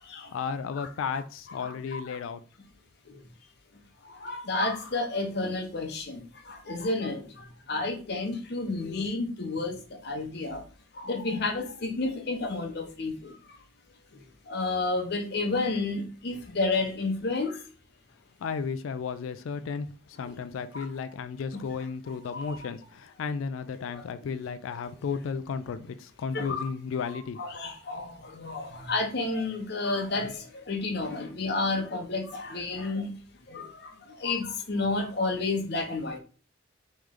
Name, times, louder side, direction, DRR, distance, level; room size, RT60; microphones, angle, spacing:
voice 1, 0.3-2.4 18.4-27.4, left 5 dB, 90° left, 0.3 m, -34 dB
voice 2, 1.6-2.2 4.0-10.6 10.9-13.3 14.5-17.6 20.2-20.4 20.7-20.9 21.5-21.6 22.3-22.4 23.9-24.0 26.3-26.7 27.1-33.1 33.5-36.2, left 3 dB, 55° left, 0.8 m, -31 dB
3.2 x 3.1 x 3.7 m
head